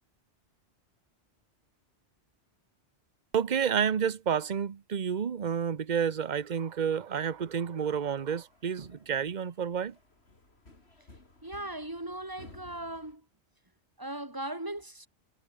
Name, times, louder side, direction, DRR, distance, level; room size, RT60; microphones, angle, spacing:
voice 1, 3.3-10.0, right 7 dB, 40° right, 1.0 m, -30 dB
sound 1, 7.3-13.2, left 2 dB, 60° left, 4.0 m, -57 dB
voice 2, 11.4-13.2 14.0-15.1, right 1 dB, 20° right, 2.3 m, -38 dB
omnidirectional pair, 1.2 m